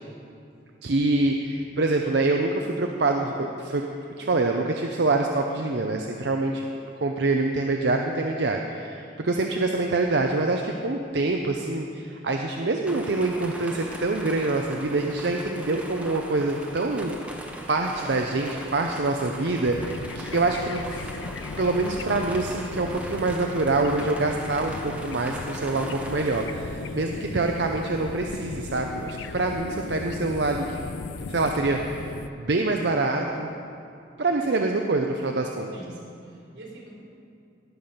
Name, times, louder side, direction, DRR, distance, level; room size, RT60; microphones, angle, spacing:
voice 1, 0.8-3.8 4.2-6.6 7.0-17.2 17.7-21.1 21.6-30.9 31.3-32.1 32.4-33.5 34.2-35.7, right 2 dB, 65° right, 2 dB, 0.6 m, -25 dB
sound 1, 12.8-26.4, right 1 dB, 5° right, 1.0 m, -40 dB
sound 2, 19.7-32.3, left 4 dB, 75° left, 0.4 m, -37 dB
voice 2, 26.7-27.1 35.7-36.9, right 1 dB, 85° right, -3 dB, 3.6 m, -45 dB
18.0 x 7.0 x 5.7 m, 2.5 s
head